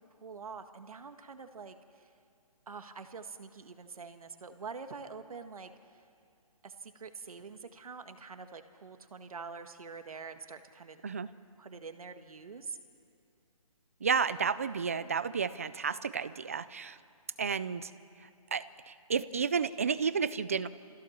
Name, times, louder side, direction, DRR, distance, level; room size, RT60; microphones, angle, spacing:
voice 1, 0.0-1.8 2.7-5.7 6.6-11.0 11.6-12.8, right 5 dB, 75° right, 8 dB, 1.7 m, -45 dB
voice 2, 14.0-17.0 17.4-17.9 18.5-20.7, right 6 dB, 25° right, 15 dB, 0.4 m, -31 dB
25.0 x 16.0 x 7.3 m, 2.6 s
hypercardioid pair, 170°, 18 cm